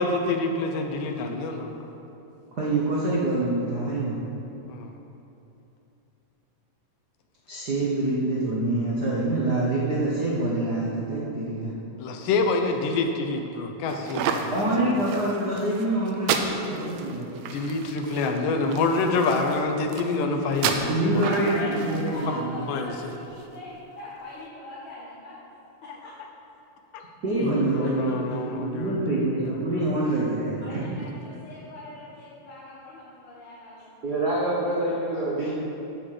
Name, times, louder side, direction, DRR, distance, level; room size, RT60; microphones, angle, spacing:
voice 1, 0.0-1.8 4.7-4.9 12.0-14.9 17.5-21.7 22.7-23.1 26.9-27.0 27.4-29.0, left 3 dB, 85° left, 4 dB, 2.4 m, -27 dB
voice 2, 2.6-4.2 7.5-11.7 14.4-17.3 20.9-22.6 27.2-30.9 34.0-35.5, right 2 dB, 65° right, -6 dB, 1.0 m, -26 dB
sound 1, 13.9-23.4, right 6 dB, 80° right, 1.5 m, -32 dB
voice 3, 21.2-25.4 25.8-26.1 27.8-27.9 28.3-28.4 30.6-34.6, left 1 dB, 55° left, -8 dB, 1.9 m, -42 dB
10.5 x 4.9 x 7.5 m, 2.9 s
omnidirectional pair, 3.7 m